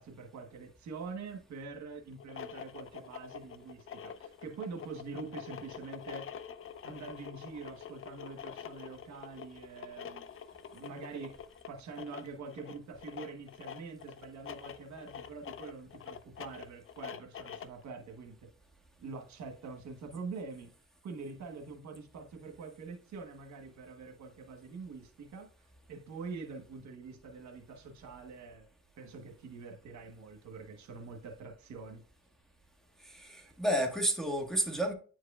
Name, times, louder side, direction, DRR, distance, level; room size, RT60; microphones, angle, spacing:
voice 1, 0.0-6.3 6.8-10.2 10.7-11.4 11.7-18.3 19.0-20.7 21.0-25.5 25.9-28.7 29.0-32.0, right 4 dB, 65° right, 1.3 m, -45 dB
sound 1, 2.1-17.8, left 8 dB, 45° left, 0.6 m, -46 dB
voice 2, 33.0-34.9, right 1 dB, ahead, 1.5 m, -31 dB
9.1 x 4.8 x 2.4 m
cardioid pair, 90°, 30 cm